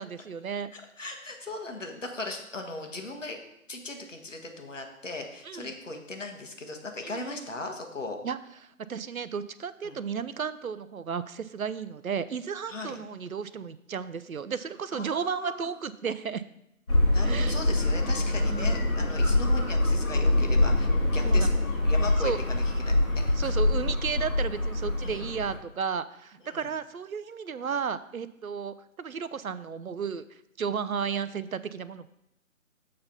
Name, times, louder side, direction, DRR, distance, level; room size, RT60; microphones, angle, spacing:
voice 1, 0.0-0.7 5.4-5.7 7.0-7.2 8.2-8.4 8.9-16.4 17.2-17.6 18.5-18.8 21.2-21.5 22.2-22.4 23.4-30.2 30.6-32.1, right 6 dB, 80° right, 15 dB, 0.6 m, -33 dB
voice 2, 0.7-3.4 3.7-8.2 9.8-10.0 12.7-13.0 14.9-15.7 17.1-23.6 25.0-25.3 26.4-26.7, left 2 dB, 60° left, 4 dB, 1.6 m, -38 dB
sound 1, 16.9-25.6, left 1 dB, 85° left, 2.2 m, -25 dB
7.5 x 4.2 x 5.6 m, 0.80 s
figure-of-eight pair, 150°, 42 cm